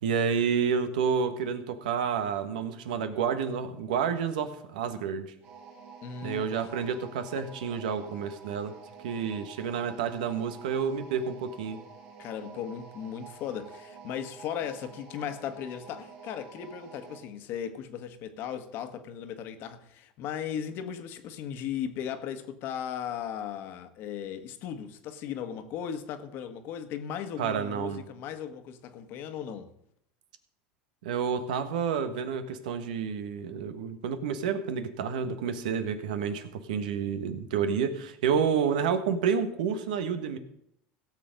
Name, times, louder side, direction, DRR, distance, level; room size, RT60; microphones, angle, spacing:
voice 1, 0.0-5.3 6.2-8.7 9.0-11.8 27.4-28.1 31.0-40.4, right 6 dB, 85° right, 1.3 m, -29 dB
sound 1, 5.4-17.3, right 5 dB, 55° right, 3.0 m, -49 dB
voice 2, 6.0-6.8 12.2-29.7, left 9 dB, 60° left, 1.4 m, -37 dB
16.5 x 6.7 x 5.2 m
supercardioid pair, 100°, 4 cm